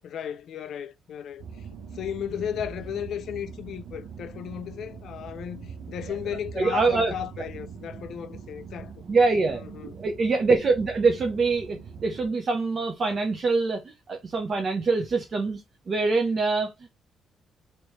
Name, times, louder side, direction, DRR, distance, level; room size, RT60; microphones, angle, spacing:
voice 1, 0.0-1.7 1.9-8.9 9.5-9.9, left 9 dB, 70° left, 0.4 m, -35 dB
sound 1, 1.4-12.2, right 6 dB, 70° right, 1.0 m, -42 dB
voice 2, 6.6-7.1 9.1-16.9, right 3 dB, 45° right, 0.8 m, -24 dB
3.0 x 3.0 x 3.2 m
cardioid pair, 90°, 0 cm